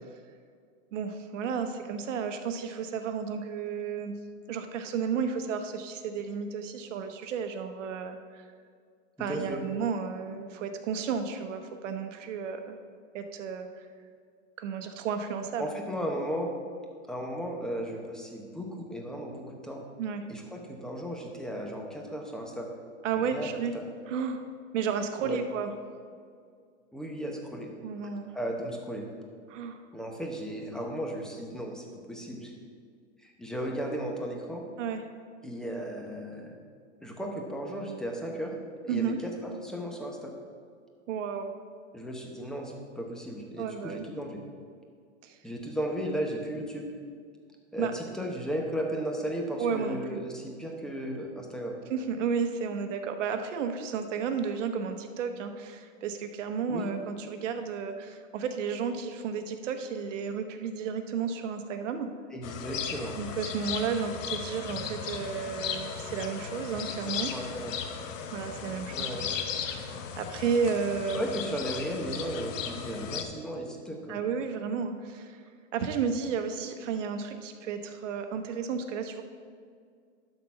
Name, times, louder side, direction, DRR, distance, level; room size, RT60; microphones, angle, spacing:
voice 1, 0.9-4.1 4.5-8.4 9.2-12.7 13.1-13.8 14.6-15.7 20.0-20.2 23.0-23.7 24.1-24.4 24.7-25.7 27.8-28.3 29.5-29.8 34.8-35.0 38.9-39.2 41.1-41.5 43.6-44.0 45.2-45.4 47.8-47.9 49.6-50.0 51.9-62.1 63.1-67.3 68.3-69.7 70.1-71.3 74.1-75.4 75.7-79.2, right 6 dB, 75° right, 7 dB, 1.0 m, -32 dB
voice 2, 9.3-9.6 15.6-16.5 17.1-19.9 20.3-22.7 23.2-23.5 23.7-23.8 25.2-25.4 26.9-27.7 28.3-29.1 29.9-32.5 33.2-34.6 35.4-36.5 37.0-38.5 38.8-40.3 41.9-44.4 45.4-46.9 47.7-51.8 56.7-56.9 62.3-63.2 66.7-66.8 67.3-67.7 68.9-69.2 71.1-74.2, equal, ahead, 0 dB, 0.9 m, -35 dB
sound 1, 62.4-73.2, left 7 dB, 80° left, 1.0 m, -36 dB
12.0 x 4.0 x 5.8 m, 2.2 s
supercardioid pair, 140°, 38 cm